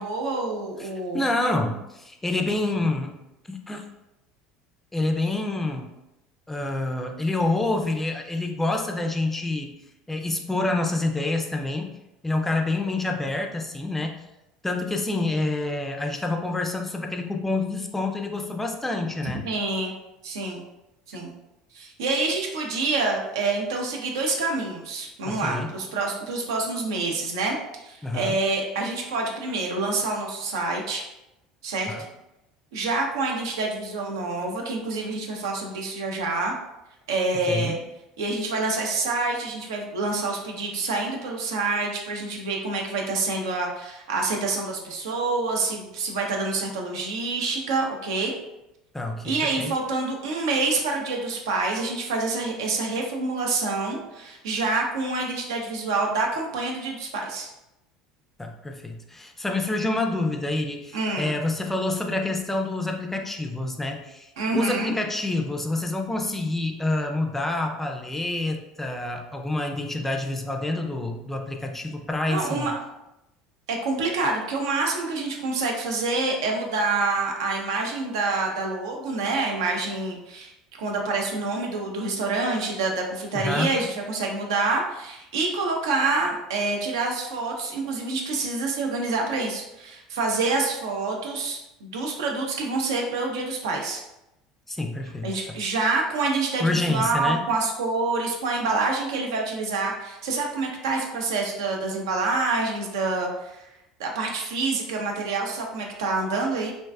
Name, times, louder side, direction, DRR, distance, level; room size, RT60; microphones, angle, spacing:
voice 1, 0.0-1.2 19.4-19.9 20.2-20.6 21.1-21.3 21.7-27.6 27.8-31.0 31.6-31.9 32.7-36.5 37.1-37.8 38.2-48.4 49.2-57.5 60.9-61.3 64.4-65.0 72.3-72.7 73.7-94.0 95.2-103.6 104.0-106.7, right 3 dB, 75° right, 1 dB, 0.5 m, -27 dB
voice 2, 0.8-3.2 3.5-3.8 4.9-5.9 6.5-9.7 10.1-11.9 12.2-14.2 14.6-19.4 25.2-25.7 28.0-28.4 31.9-32.0 37.5-37.8 48.9-49.7 58.4-72.7 83.3-83.8 94.7-95.6 96.6-97.5, left 2 dB, 10° left, 3 dB, 0.3 m, -27 dB
2.5 x 2.2 x 2.2 m, 0.92 s
hypercardioid pair, 75°, 2 cm